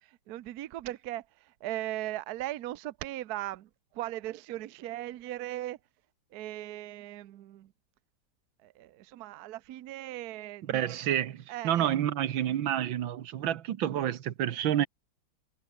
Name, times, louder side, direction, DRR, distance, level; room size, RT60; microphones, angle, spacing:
voice 1, 0.0-5.8 6.3-7.7 8.6-10.9 11.5-11.9, right 15 dB, 65° right, 1.1 m, -38 dB
voice 2, 10.7-14.9, right 11 dB, 85° right, 1.8 m, -29 dB
omnidirectional pair, 2.1 m